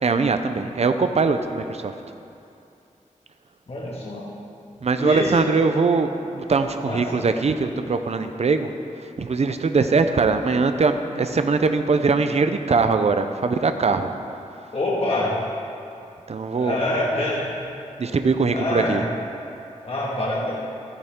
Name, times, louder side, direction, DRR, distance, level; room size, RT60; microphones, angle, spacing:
voice 1, 0.0-1.9 4.8-8.7 9.2-14.1 16.3-16.8 18.0-19.0, right 4 dB, 55° right, 8 dB, 0.6 m, -21 dB
voice 2, 3.7-4.3 5.0-5.6 6.8-7.3 14.7-15.3 16.5-17.5 18.0-18.2 18.5-19.0 19.8-20.5, left 1 dB, 50° left, -6 dB, 2.0 m, -26 dB
14.0 x 9.8 x 3.7 m, 2.7 s
wide cardioid pair, 90°, 13 cm